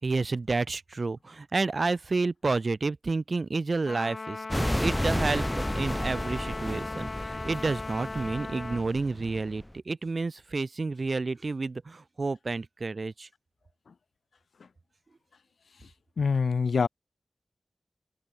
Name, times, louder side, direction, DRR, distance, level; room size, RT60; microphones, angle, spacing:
voice 1, 0.0-13.3, right 3 dB, 55° right, 2.7 m, -30 dB
Trumpet, 3.9-8.9, left 3 dB, 55° left, 5.3 m, -38 dB
sound 1, 4.5-9.7, equal, 5° left, 0.6 m, -32 dB
voice 2, 16.2-16.9, left 5 dB, 85° left, 0.6 m, -24 dB
wide cardioid pair, 70°, 0 cm